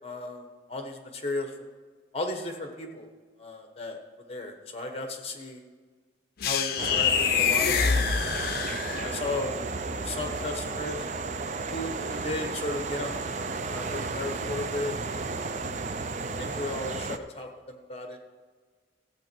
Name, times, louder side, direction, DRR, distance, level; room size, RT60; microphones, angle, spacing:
voice 1, 0.0-1.7 2.1-3.1 3.4-4.0 4.3-5.6 6.4-8.4 8.9-9.5 10.0-11.1 11.7-13.4 13.6-15.0 15.3-15.6 16.4-18.2, left 2 dB, 35° left, 4 dB, 1.2 m, -35 dB
sound 1, 6.4-9.3, left 7 dB, 55° left, 0.6 m, -26 dB
sound 2, 6.8-17.2, right 4 dB, 40° right, 0.4 m, -33 dB
14.0 x 8.2 x 4.6 m, 1.4 s
head